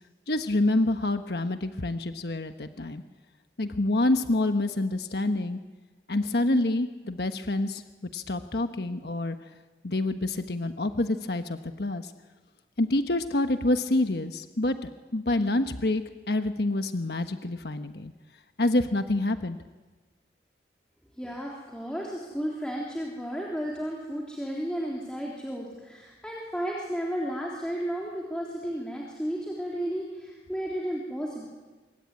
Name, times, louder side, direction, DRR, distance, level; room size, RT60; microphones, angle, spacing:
voice 1, 0.3-3.0 3.6-5.6 6.1-7.8 8.1-9.4 9.8-12.1 12.8-18.1 18.6-19.6, left 2 dB, 70° left, 8 dB, 1.2 m, -27 dB
voice 2, 21.2-31.5, equal, 5° left, -3 dB, 3.4 m, -33 dB
26.0 x 22.5 x 9.7 m, 1.3 s
head